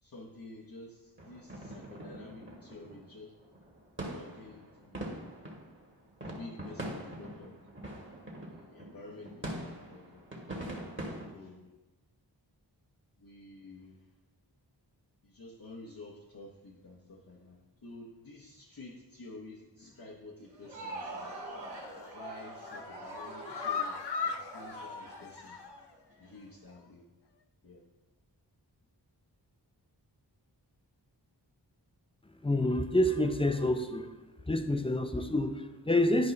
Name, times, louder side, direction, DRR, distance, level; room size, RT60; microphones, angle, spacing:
voice 1, 0.0-3.4 4.1-5.4 6.3-7.6 8.4-11.7 13.2-14.1 15.2-21.4 22.1-24.0 24.2-25.6 26.2-27.1 27.6-27.9, left 2 dB, 55° left, -4 dB, 0.9 m, -50 dB
sound 1, 1.2-11.3, right 1 dB, 30° right, 1.8 m, -43 dB
Crowd, 20.4-26.3, right 1 dB, 90° right, 2.0 m, -44 dB
sound 2, 21.8-22.1 22.5-25.9 26.2-26.3 26.7-26.8, left 5 dB, 70° left, 0.6 m, -38 dB
voice 2, 32.4-34.2 34.4-36.3, left 1 dB, 15° left, 7 dB, 0.5 m, -28 dB
10.5 x 5.3 x 3.2 m, 1.1 s
wide cardioid pair, 70°, 42 cm